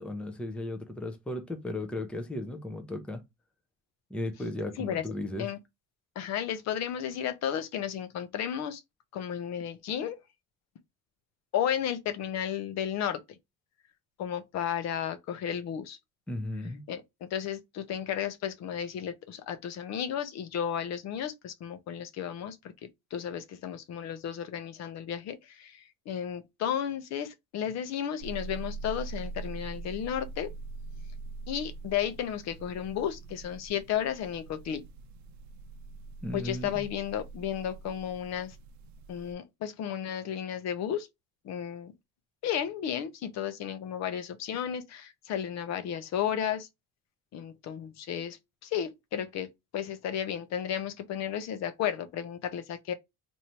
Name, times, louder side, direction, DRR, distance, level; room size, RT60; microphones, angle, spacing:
voice 1, 0.0-3.2 4.1-5.5 16.3-16.8 36.2-36.9, left 1 dB, 5° left, 0.5 m, -35 dB
voice 2, 6.2-8.8 9.1-10.2 11.5-13.4 14.2-16.0 16.9-30.5 31.5-34.8 36.3-38.6 39.1-41.1 41.4-41.9 42.4-46.7 47.3-52.9, left 9 dB, 55° left, 0.7 m, -33 dB
sound 1, 28.2-39.3, right 3 dB, 60° right, 0.6 m, -43 dB
3.1 x 2.7 x 4.2 m
cardioid pair, 165°, 32 cm